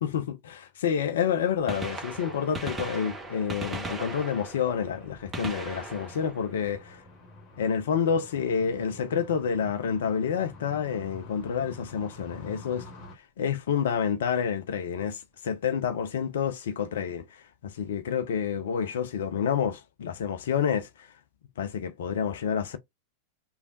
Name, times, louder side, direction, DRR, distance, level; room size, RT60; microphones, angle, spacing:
voice 1, 0.0-7.0 7.6-12.9 13.4-21.1 21.6-22.8, left 7 dB, 60° left, 0.4 m, -29 dB
Gunshot gunfire, 1.5-7.4 9.3-9.5 10.5-10.6 12.2-12.3 13.7-13.8 13.9-14.0, right 2 dB, 15° right, 0.9 m, -39 dB
sound 1, 4.8-13.1, left 1 dB, 40° left, 1.1 m, -48 dB
3.2 x 2.3 x 2.4 m
figure-of-eight pair, 90°, 0 cm